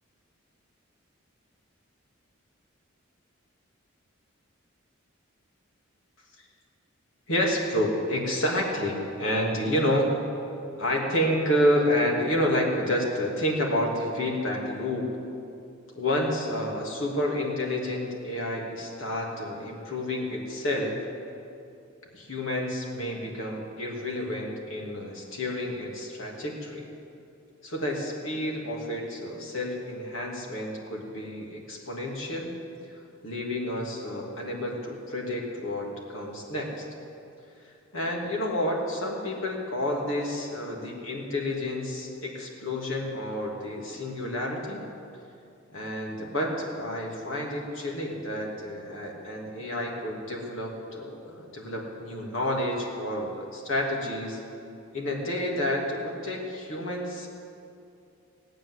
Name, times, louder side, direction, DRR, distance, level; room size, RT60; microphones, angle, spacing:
voice 1, 7.3-10.1 10.8-15.1 15.9-21.0 22.1-26.9 27.6-32.5 33.2-36.8 37.9-44.8 45.7-54.4 54.9-57.3, left 1 dB, 70° left, -1 dB, 2.9 m, -29 dB
18.0 x 8.9 x 8.1 m, 2.6 s
head